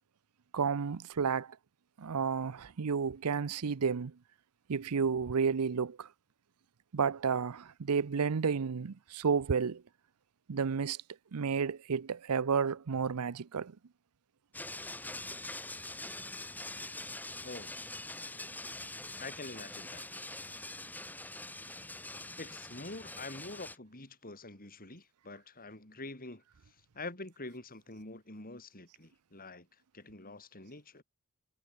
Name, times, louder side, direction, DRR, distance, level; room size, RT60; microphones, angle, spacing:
voice 1, 0.5-1.6 2.0-4.1 4.7-6.1 6.9-9.8 10.5-11.0 11.3-13.7, right 6 dB, 85° right, 0.6 m, -31 dB
sound 1, 14.5-23.8, left 2 dB, 10° left, 2.3 m, -44 dB
voice 2, 17.4-17.7 19.2-20.1 22.4-29.7 29.9-31.0, left 2 dB, 40° left, 6.3 m, -46 dB
head